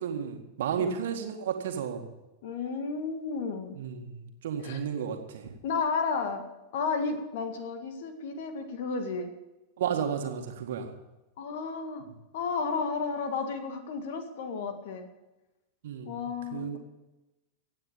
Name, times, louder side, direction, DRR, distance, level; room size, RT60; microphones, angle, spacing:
voice 1, 0.0-2.1 3.7-5.5 9.8-10.9 15.8-16.8, right 7 dB, 60° right, 4 dB, 2.0 m, -33 dB
voice 2, 2.4-3.8 4.6-4.8 5.6-6.4 6.7-9.3 11.4-12.1 12.3-15.1 16.1-16.8, left 4 dB, 55° left, 7 dB, 2.0 m, -32 dB
16.0 x 8.9 x 7.2 m, 1.0 s
figure-of-eight pair, 90°, 0 cm